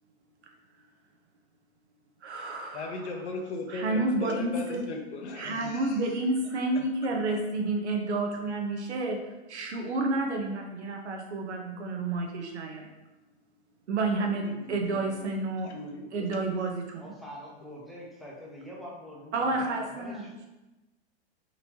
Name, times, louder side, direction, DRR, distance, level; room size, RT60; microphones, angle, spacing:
voice 1, 2.2-3.0 3.7-4.8 5.4-9.2 9.5-12.9 13.9-15.7 16.1-17.1 19.3-20.2, right 2 dB, 90° right, 2 dB, 0.8 m, -30 dB
voice 2, 2.7-6.0 6.5-6.9 14.0-15.2 15.6-16.3, left 3 dB, 90° left, 2 dB, 0.7 m, -39 dB
voice 3, 17.0-20.3, equal, ahead, -4 dB, 0.6 m, -45 dB
4.0 x 3.0 x 2.8 m, 1.1 s
hypercardioid pair, 125°, 33 cm